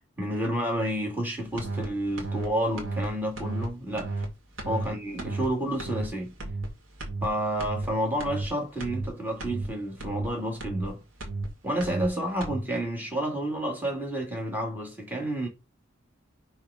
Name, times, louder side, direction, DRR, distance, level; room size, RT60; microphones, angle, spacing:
voice 1, 0.2-4.1 4.6-6.3 7.2-11.0 11.6-15.5, right 1 dB, 10° right, 2.6 m, -30 dB
sound 1, 1.6-1.9 2.2-2.5 2.8-3.1 3.4-3.7 4.0-4.3 4.6-4.9 5.2-5.5 5.8-6.1 6.4-6.7 7.0-7.3 7.6-7.9 8.2-8.5 8.8-9.1 9.4-9.7 10.0-10.3 10.6-10.9 11.2-11.5 11.8-12.1 12.4-12.6, right 2 dB, 75° right, 2.2 m, -32 dB
5.6 x 4.4 x 5.1 m
head